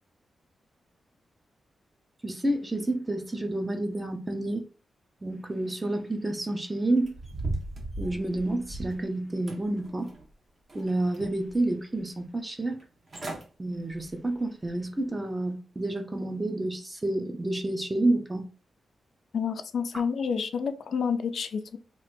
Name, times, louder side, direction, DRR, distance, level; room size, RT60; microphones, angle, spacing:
voice 1, 2.2-4.7 5.2-7.1 8.0-10.1 10.7-12.8 13.6-18.5, right 2 dB, 15° right, 0.6 m, -29 dB
sound 1, 7.0-9.0 9.5-10.3 10.7-11.5 12.0-12.1 12.8-12.9 13.1-13.5 13.9-14.2 14.7-14.8, right 2 dB, 40° right, 1.1 m, -37 dB
voice 2, 19.3-21.8, left 6 dB, 70° left, 0.4 m, -29 dB
3.0 x 2.5 x 4.3 m
wide cardioid pair, 130°, 0 cm